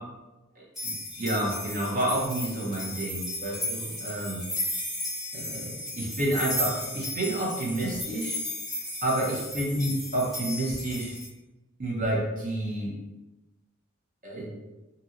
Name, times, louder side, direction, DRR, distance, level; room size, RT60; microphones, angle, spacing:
voice 1, 0.6-4.4 5.3-8.4 9.0-11.2 11.8-12.9 14.2-14.5, right 1 dB, 40° right, -3 dB, 0.7 m, -29 dB
sound 1, 0.8-11.3, left 1 dB, ahead, 1.0 m, -35 dB
2.8 x 2.7 x 2.5 m, 1.1 s
head